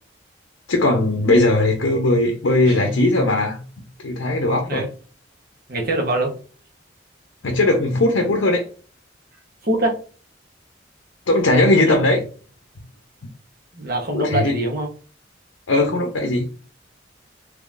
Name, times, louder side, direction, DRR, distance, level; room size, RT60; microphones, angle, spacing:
voice 1, 0.7-3.6 4.0-4.8 7.4-8.6 11.3-12.2 14.1-14.6 15.7-16.5, left 2 dB, 90° left, 3 dB, 0.6 m, -18 dB
Guitar, 2.6-3.9, left 1 dB, 80° right, 1.1 m, -31 dB
voice 2, 4.5-4.9 5.7-6.3 9.6-9.9 11.8-12.0 13.7-14.9, right 1 dB, 50° right, 1 dB, 0.9 m, -23 dB
3.8 x 3.0 x 2.4 m, 0.39 s
head